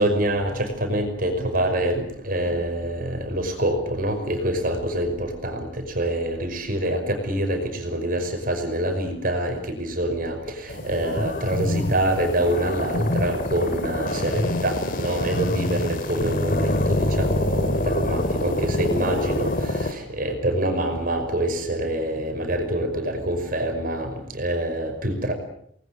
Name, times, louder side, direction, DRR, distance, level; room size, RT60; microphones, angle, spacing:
voice 1, 0.0-25.3, right 1 dB, 45° right, 5 dB, 5.5 m, -26 dB
sound 1, 10.7-19.9, left 1 dB, 45° left, 2.1 m, -25 dB
28.0 x 20.5 x 7.9 m, 0.67 s
head